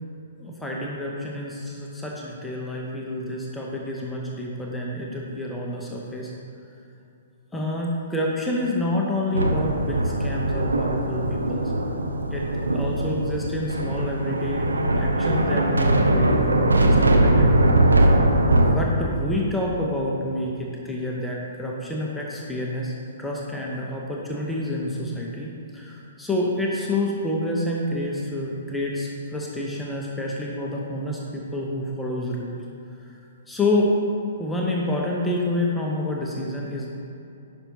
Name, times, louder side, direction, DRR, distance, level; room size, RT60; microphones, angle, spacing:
voice 1, 0.4-6.3 7.5-11.7 12.3-12.4 12.7-14.7 15.0-17.5 18.5-22.9 23.2-32.6 33.5-33.9 34.4-36.9, left 1 dB, 5° left, -3 dB, 0.8 m, -28 dB
sound 1, 9.3-18.7, right 1 dB, 85° right, 0.6 m, -21 dB
9.8 x 5.7 x 2.7 m, 2.7 s
figure-of-eight pair, 120°, 0 cm